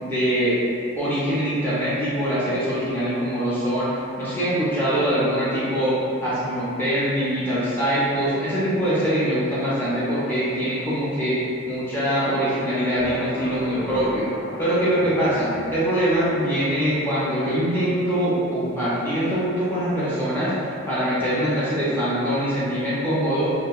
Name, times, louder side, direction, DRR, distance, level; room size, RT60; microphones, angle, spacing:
voice 1, 0.0-0.6 1.0-3.9 4.2-11.4 11.7-14.3 14.6-23.5, equal, 10° left, -10 dB, 0.4 m, -23 dB
sound 1, 13.0-17.0, equal, 60° left, 0.6 m, -36 dB
2.7 x 2.5 x 2.3 m, 2.6 s
head